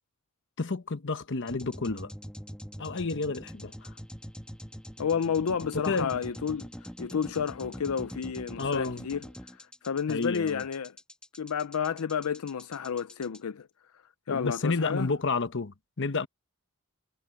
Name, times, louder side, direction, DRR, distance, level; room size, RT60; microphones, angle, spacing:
voice 1, 0.6-2.1 2.8-3.9 5.7-6.1 8.6-9.1 10.1-10.6 14.3-16.3, left 3 dB, 60° left, 1.0 m, -30 dB
sound 1, 1.5-13.4, equal, 5° left, 1.8 m, -44 dB
voice 2, 5.0-9.2 9.5-11.0 11.4-13.7 14.3-15.1, left 6 dB, 85° left, 0.5 m, -31 dB
head